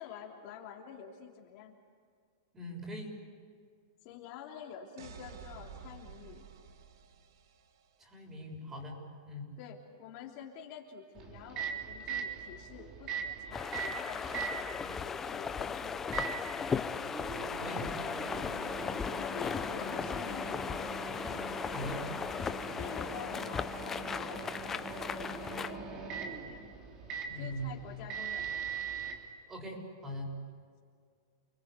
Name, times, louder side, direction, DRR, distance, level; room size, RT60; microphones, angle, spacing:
voice 1, 0.0-1.7 4.0-6.5 9.6-14.2 14.5-16.7 18.8-20.9 22.8-26.7 27.4-28.7, left 8 dB, 45° left, -1 dB, 3.4 m, -48 dB
voice 2, 2.5-3.1 8.0-9.0 9.3-9.5 17.6-17.9 21.7-22.0 27.3-28.0 29.5-30.3, equal, 15° right, 0 dB, 6.9 m, -41 dB
sound 1, 5.0-7.8, right 6 dB, 70° right, 1.9 m, -51 dB
Microwave oven, 11.2-29.2, right 5 dB, 35° right, 3.4 m, -41 dB
sound 2, 13.5-25.7, left 6 dB, 15° left, 0.6 m, -37 dB
29.5 x 21.5 x 8.3 m, 2.1 s
supercardioid pair, 145°, 2 cm